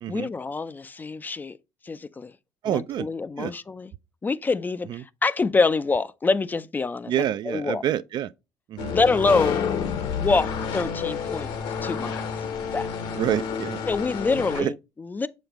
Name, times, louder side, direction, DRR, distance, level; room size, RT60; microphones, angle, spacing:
voice 1, 0.1-1.6 1.8-2.3 2.6-3.9 4.2-7.8 8.9-9.7 10.2-11.5 11.8-12.3 12.7-12.9 13.9-15.3, left 4 dB, 20° left, 0.4 m, -26 dB
voice 2, 2.6-3.1 3.4-3.5 4.9-5.0 7.1-8.3 8.7-8.9 13.2-13.8 14.6-14.7, right 11 dB, 50° right, 0.4 m, -27 dB
sound 1, 8.8-14.6, left 6 dB, 75° left, 1.4 m, -31 dB
sound 2, 9.2-14.3, left 7 dB, 60° left, 0.9 m, -33 dB
7.0 x 5.1 x 2.9 m
cardioid pair, 110°, 9 cm